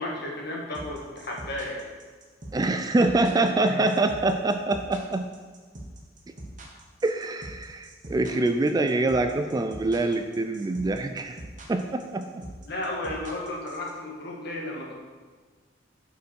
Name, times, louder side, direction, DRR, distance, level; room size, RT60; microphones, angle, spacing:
voice 1, 0.0-1.8 3.6-4.1 12.7-14.9, left 1 dB, 60° left, -1 dB, 1.6 m, -34 dB
sound 1, 0.7-13.9, right 1 dB, 40° right, 1.1 m, -42 dB
voice 2, 2.5-5.3 7.0-11.4 11.7-12.4, right 2 dB, 20° right, 7 dB, 0.3 m, -25 dB
6.6 x 5.4 x 4.6 m, 1.4 s
head